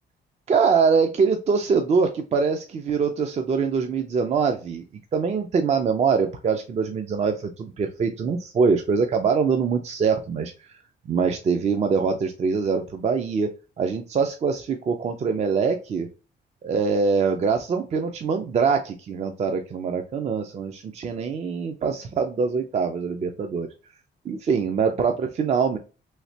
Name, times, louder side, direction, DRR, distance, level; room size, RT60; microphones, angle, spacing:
voice 1, 0.5-4.8 5.1-10.7 11.1-16.1 16.6-23.7 24.2-25.8, right 5 dB, 35° right, 5 dB, 0.4 m, -23 dB
3.2 x 2.8 x 2.7 m, 0.34 s
cardioid pair, 135°, 19 cm